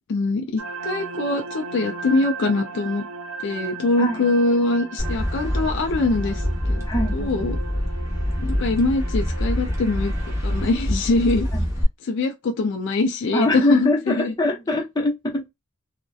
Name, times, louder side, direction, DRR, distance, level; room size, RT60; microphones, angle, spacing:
voice 1, 0.1-3.1 3.4-6.9 7.1-7.6 8.4-10.1 10.4-11.5 12.1-14.3, left 2 dB, 60° left, 0.4 m, -23 dB
sound 1, 0.6-10.8, right 4 dB, 85° right, 0.4 m, -37 dB
sound 2, 5.0-11.8, equal, 15° right, 0.8 m, -26 dB
voice 2, 6.9-7.4 11.5-11.7 13.3-15.5, left 1 dB, 20° left, 0.7 m, -23 dB
2.6 x 2.1 x 2.2 m
head